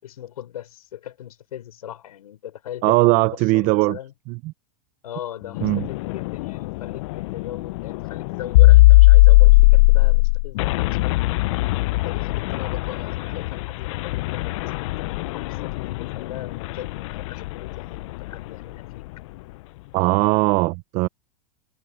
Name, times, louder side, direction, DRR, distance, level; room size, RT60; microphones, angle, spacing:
voice 1, 0.0-4.1 5.0-11.4 12.0-19.1, left 11 dB, 85° left, 5.5 m, -39 dB
voice 2, 2.8-4.0 4.3-4.5 5.6-5.9 19.9-21.1, right 22 dB, 40° right, 0.7 m, -19 dB
Bass guitar, 5.4-11.7, left 17 dB, 40° left, 7.8 m, -49 dB
sound 1, 5.6-18.3, left 20 dB, 60° left, 0.5 m, -18 dB
supercardioid pair, 135°, 19 cm